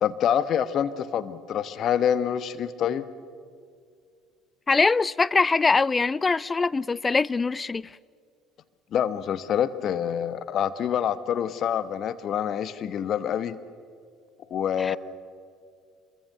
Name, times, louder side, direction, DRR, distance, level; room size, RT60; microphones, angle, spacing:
voice 1, 0.0-3.0 8.9-13.6 14.5-15.0, left 9 dB, 50° left, 1.2 m, -26 dB
voice 2, 4.7-7.9 14.8-15.0, left 4 dB, 25° left, 0.5 m, -23 dB
26.5 x 23.0 x 6.7 m
hypercardioid pair, 65°, 0 cm